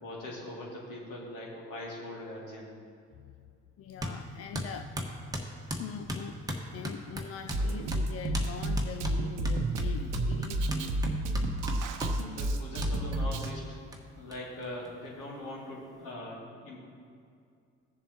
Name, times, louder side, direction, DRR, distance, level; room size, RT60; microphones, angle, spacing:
voice 1, 0.0-2.8 12.2-13.8 14.2-16.8, left 1 dB, 60° left, -4 dB, 2.6 m, -41 dB
voice 2, 3.1-3.5 3.8-5.0 5.8-6.4 6.7-11.0, left 8 dB, 40° left, 7 dB, 0.5 m, -42 dB
sound 1, 4.0-4.2 4.5-7.6 7.9-8.1 8.3-8.5 8.8-12.2 12.8-12.9 13.4-13.5 13.9-14.0 14.3-14.4 14.6-15.4, equal, 10° right, 1.4 m, -37 dB
Drum kit, 7.5-13.5, right 1 dB, 55° right, 0.8 m, -31 dB
16.0 x 7.1 x 2.9 m, 2.3 s
figure-of-eight pair, 45°, 37 cm